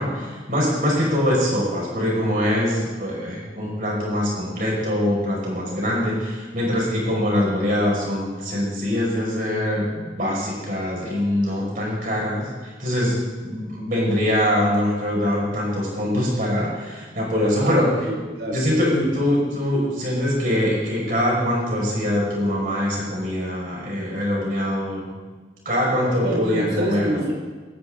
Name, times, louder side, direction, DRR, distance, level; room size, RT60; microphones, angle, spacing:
voice 1, 0.0-17.9 18.5-25.0 25.7-27.2, left 1 dB, 50° right, -3 dB, 5.5 m, -23 dB
voice 2, 17.5-19.1 26.2-27.4, right 1 dB, 85° right, -2 dB, 4.8 m, -27 dB
17.5 x 14.0 x 3.8 m, 1.4 s
head